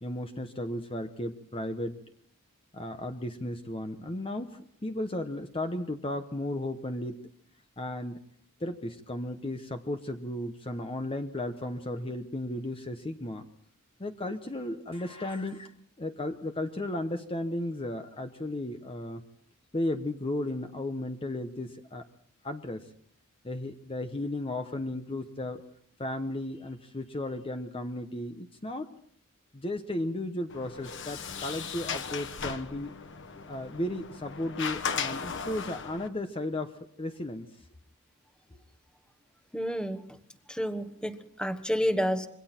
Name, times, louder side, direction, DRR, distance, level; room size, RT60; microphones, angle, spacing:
voice 1, 0.0-2.0 2.7-7.2 7.8-8.2 8.6-13.4 14.0-15.7 16.0-19.2 19.7-22.1 22.4-22.9 23.4-25.6 26.0-28.9 29.5-32.9 33.5-37.5, left 1 dB, 25° left, 7 dB, 0.9 m, -34 dB
Sliding door, 30.5-36.1, left 6 dB, 60° left, 1.4 m, -37 dB
voice 2, 39.5-40.0 40.5-42.3, equal, 5° left, 9 dB, 1.2 m, -30 dB
26.5 x 22.5 x 4.4 m, 0.62 s
head